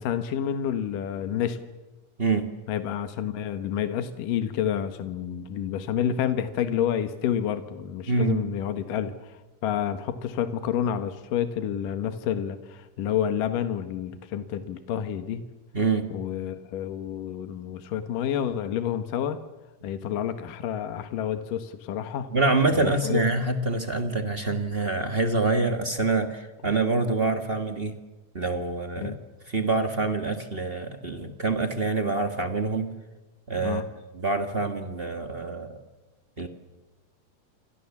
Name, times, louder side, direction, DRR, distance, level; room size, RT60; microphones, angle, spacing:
voice 1, 0.0-1.6 2.7-15.4 16.1-19.4 19.8-22.3 22.7-23.2 29.0-29.2 33.6-33.9, left 9 dB, 80° left, 9 dB, 3.0 m, -29 dB
voice 2, 8.1-8.4 15.7-16.1 22.3-27.9 28.3-29.2 29.5-32.9 33.5-33.8 34.1-35.8 36.4-36.5, right 3 dB, 30° right, 6 dB, 1.0 m, -26 dB
28.5 x 26.0 x 7.3 m, 1.1 s
omnidirectional pair, 3.8 m